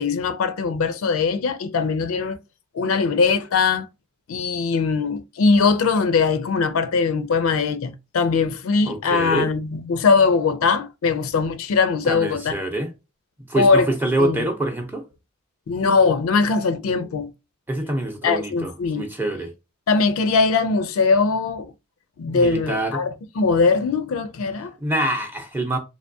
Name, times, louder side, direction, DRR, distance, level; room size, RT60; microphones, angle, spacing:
voice 1, 0.0-2.4 2.7-3.9 4.3-12.5 13.6-13.9 14.2-14.4 15.7-17.3 18.2-19.1 19.9-21.7 22.2-23.1 23.4-24.7, left 4 dB, 85° left, 0.4 m, -21 dB
voice 2, 8.9-9.5 12.0-12.9 13.5-15.0 17.7-19.5 22.3-23.0 24.8-25.8, right 1 dB, 10° right, 0.6 m, -25 dB
3.3 x 3.0 x 2.6 m
head